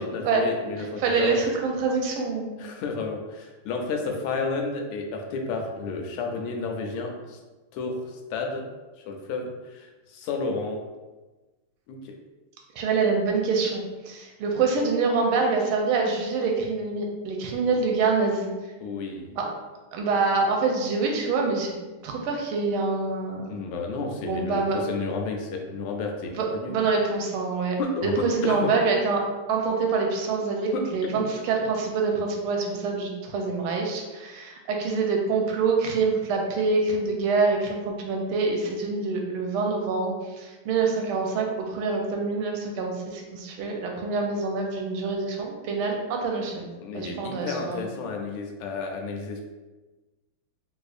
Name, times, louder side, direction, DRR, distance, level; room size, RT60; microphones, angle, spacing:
voice 1, 0.0-1.4 2.6-7.4 7.7-8.6 9.0-10.8 11.9-12.2 18.8-19.3 23.5-26.7 27.8-28.7 30.7-30.8 46.8-49.4, left 4 dB, 90° left, 2 dB, 1.5 m, -31 dB
voice 2, 0.8-2.6 12.8-18.5 19.3-19.5 19.9-21.7 22.0-23.5 24.2-24.8 26.3-27.8 28.0-46.7 46.9-47.8, right 4 dB, 85° right, 1 dB, 1.5 m, -26 dB
4.0 x 2.6 x 2.4 m, 1.2 s
omnidirectional pair, 2.3 m